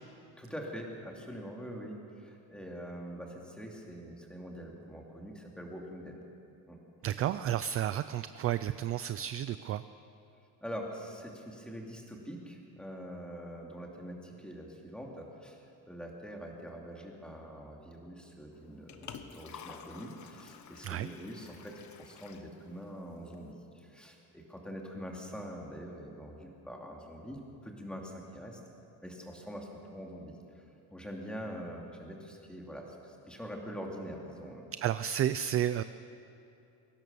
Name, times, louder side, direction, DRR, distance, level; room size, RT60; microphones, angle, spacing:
voice 1, 0.4-6.2 6.7-6.8 10.6-15.6 15.8-28.6 29.0-30.6 30.9-34.7, equal, ahead, -1 dB, 2.5 m, -44 dB
voice 2, 7.0-9.8 20.8-21.1 34.8-35.8, right 11 dB, 40° right, 13 dB, 0.4 m, -31 dB
Liquid, 18.5-23.5, left 7 dB, 50° left, 1.3 m, -51 dB
22.5 x 17.5 x 6.9 m, 2.7 s
cardioid pair, 165°, 38 cm